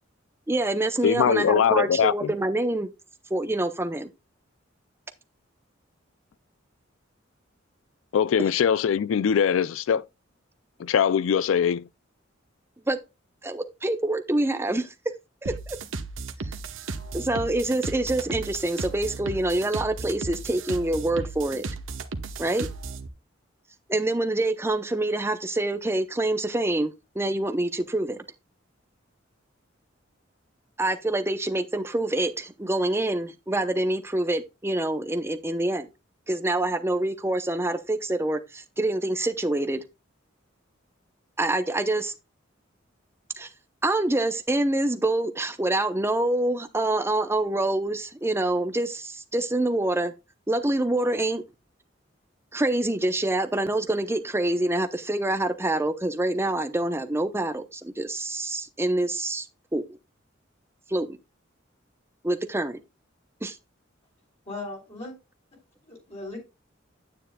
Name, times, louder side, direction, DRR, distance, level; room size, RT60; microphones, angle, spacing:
voice 1, 0.5-2.9 3.3-4.1 12.9-13.0 13.4-14.9 15.4-15.8 17.1-21.6 22.4-22.7 23.9-28.2 30.8-35.9 36.3-39.8 41.4-42.1 43.4-43.5 43.8-50.1 50.5-51.4 52.5-59.4 59.7-59.8 60.9-61.2 62.2-62.8 63.4-63.5, right 2 dB, 15° right, 0.7 m, -26 dB
voice 2, 1.0-2.3 8.1-10.0 10.8-11.8, left 7 dB, 85° left, 0.4 m, -22 dB
sound 1, 15.5-23.1, right 3 dB, 90° right, 1.0 m, -35 dB
voice 3, 64.5-65.1 65.8-66.4, left 2 dB, 35° left, 3.7 m, -37 dB
10.0 x 9.2 x 2.3 m
head